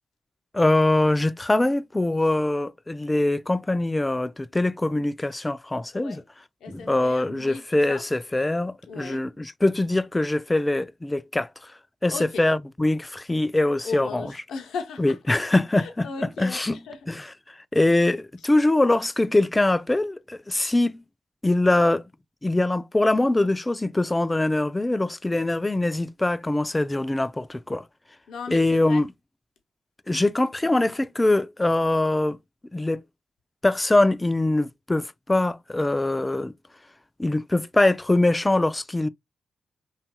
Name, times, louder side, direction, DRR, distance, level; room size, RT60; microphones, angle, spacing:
voice 1, 0.5-6.2 6.7-11.7 12.0-14.2 15.0-16.1 16.4-16.8 17.1-21.0 21.4-22.0 22.4-27.8 28.5-29.1 30.1-32.4 32.7-33.0 33.6-36.5 37.2-39.1, left 2 dB, 20° left, 0.4 m, -23 dB
voice 2, 6.6-8.0 8.9-9.2 12.1-12.4 13.8-15.2 15.8-17.0 28.3-29.0, left 5 dB, 80° left, 0.6 m, -37 dB
2.8 x 2.4 x 2.8 m
supercardioid pair, 45°, 0 cm